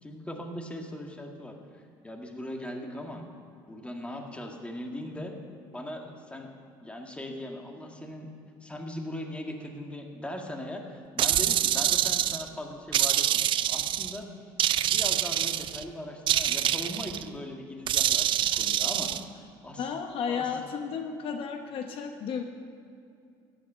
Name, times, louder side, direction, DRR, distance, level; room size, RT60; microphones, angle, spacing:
voice 1, 0.0-3.2 3.7-5.4 5.7-6.5 6.8-8.3 8.6-14.3 14.8-19.3 19.6-19.9 20.3-20.5, left 1 dB, 10° left, 2 dB, 1.9 m, -39 dB
sound 1, 11.2-12.5 12.9-14.2 14.6-15.8 16.3-17.2 17.9-19.2, right 11 dB, 50° right, 0.5 m, -26 dB
voice 2, 19.8-22.4, left 6 dB, 55° left, 5 dB, 1.0 m, -33 dB
14.0 x 10.0 x 5.7 m, 2.4 s
supercardioid pair, 90°, 11 cm